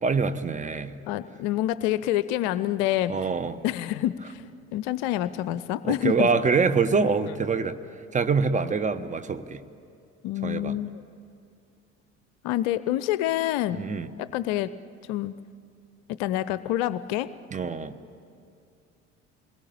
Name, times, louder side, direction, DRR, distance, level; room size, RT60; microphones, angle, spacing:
voice 1, 0.0-1.0 3.1-3.6 5.9-7.8 8.1-9.6 10.4-10.8 13.7-14.1 17.5-17.9, right 5 dB, 20° right, 11 dB, 1.1 m, -25 dB
voice 2, 1.1-3.1 3.6-4.4 4.7-6.3 7.3-7.4 10.2-11.0 12.4-13.8 14.2-14.7 15.1-15.3 16.1-17.3, left 13 dB, 55° left, 16 dB, 0.7 m, -27 dB
27.5 x 21.0 x 8.7 m, 2.4 s
figure-of-eight pair, 60°, 37 cm